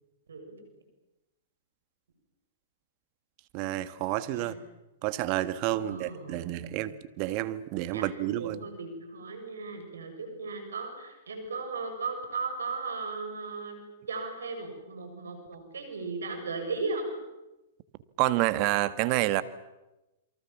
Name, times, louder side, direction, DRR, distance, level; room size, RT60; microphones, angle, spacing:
voice 1, 0.3-0.6 4.3-4.5 5.7-6.9 7.9-13.8 14.1-17.2, right 4 dB, 80° right, 6 dB, 7.0 m, -37 dB
voice 2, 3.5-4.5 5.0-8.6 18.2-19.4, right 16 dB, 45° right, 13 dB, 1.5 m, -29 dB
28.5 x 23.5 x 7.3 m, 0.99 s
hypercardioid pair, 120°, 0 cm